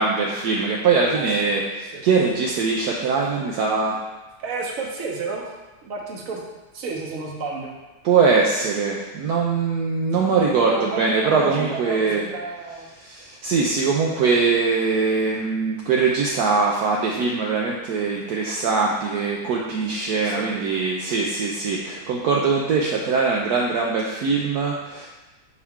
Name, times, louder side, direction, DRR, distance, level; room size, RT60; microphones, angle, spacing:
voice 1, 0.0-1.6 2.0-4.0 8.0-12.2 13.0-25.1, right 4 dB, 70° right, -2 dB, 1.1 m, -22 dB
voice 2, 1.1-2.1 4.4-5.4 5.8-6.4 6.7-7.7 10.6-12.9 20.2-20.6, right 3 dB, 55° right, 0 dB, 1.2 m, -31 dB
5.7 x 4.7 x 3.6 m, 1.1 s
omnidirectional pair, 1.8 m